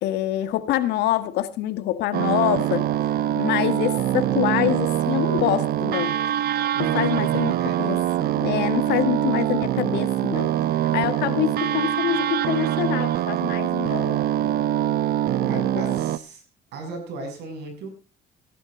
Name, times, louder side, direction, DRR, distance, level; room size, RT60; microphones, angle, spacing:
voice 1, 0.0-6.2 6.5-8.0 8.3-10.5 10.9-14.2 15.4-15.9, left 13 dB, 85° left, 1.8 m, -26 dB
sound 1, 2.1-16.2, right 12 dB, 65° right, 0.8 m, -24 dB
voice 2, 6.7-7.8 15.1-16.4 16.7-17.9, right 3 dB, 80° right, 7.2 m, -36 dB
17.5 x 11.5 x 3.9 m
cardioid pair, 110°, 17 cm